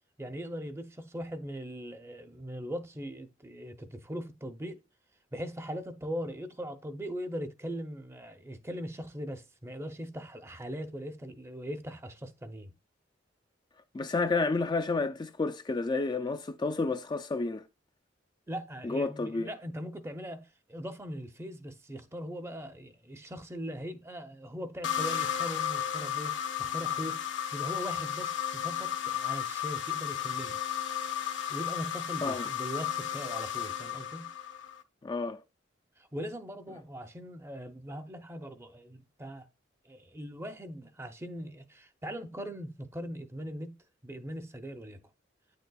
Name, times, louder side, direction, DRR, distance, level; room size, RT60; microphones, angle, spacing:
voice 1, 0.2-4.8 5.3-12.7 18.5-27.2 27.5-30.6 31.5-34.3 36.0-39.5 39.8-43.7 44.0-45.0, equal, 15° right, 0.6 m, -40 dB
voice 2, 13.9-17.6 18.8-19.5 32.2-32.4 35.0-35.4, left 3 dB, 25° left, 0.3 m, -30 dB
sound 1, 24.8-34.8, left 10 dB, 75° left, 0.7 m, -34 dB
9.0 x 6.5 x 2.3 m
head